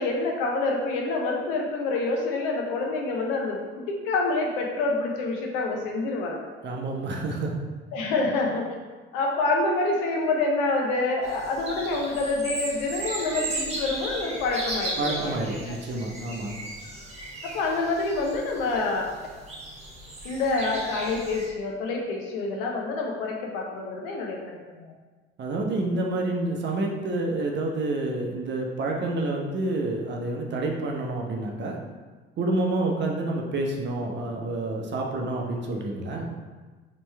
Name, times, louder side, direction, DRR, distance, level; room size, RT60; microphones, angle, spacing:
voice 1, 0.0-6.5 7.9-8.7 9.1-15.8 17.4-19.1 20.2-24.9, left 3 dB, 65° left, 0 dB, 0.8 m, -27 dB
voice 2, 6.6-7.5 15.0-16.5 25.4-31.8 32.4-36.3, right 2 dB, 35° right, 1 dB, 0.7 m, -28 dB
sound 1, 11.2-21.5, right 1 dB, 20° right, 1.2 m, -36 dB
4.3 x 3.1 x 3.2 m, 1.3 s
figure-of-eight pair, 50°, 30 cm